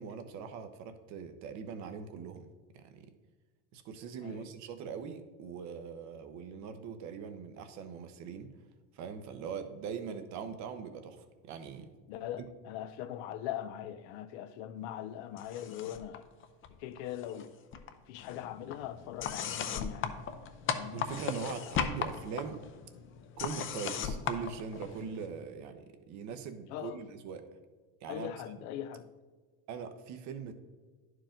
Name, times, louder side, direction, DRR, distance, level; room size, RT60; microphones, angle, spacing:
voice 1, 0.0-2.5 2.7-3.1 3.7-8.5 8.9-11.9 20.9-22.6 23.4-27.5 28.0-28.3 29.7-30.6, right 6 dB, 55° right, 0.9 m, -41 dB
voice 2, 12.1-16.3 16.7-17.5 18.1-20.2 20.7-21.1 26.7-27.0 28.1-29.1, left 11 dB, 80° left, 0.6 m, -41 dB
sound 1, 15.4-16.2 16.4-17.5 17.7-25.3, left 7 dB, 35° left, 0.6 m, -37 dB
10.5 x 4.7 x 3.8 m
supercardioid pair, 115°, 34 cm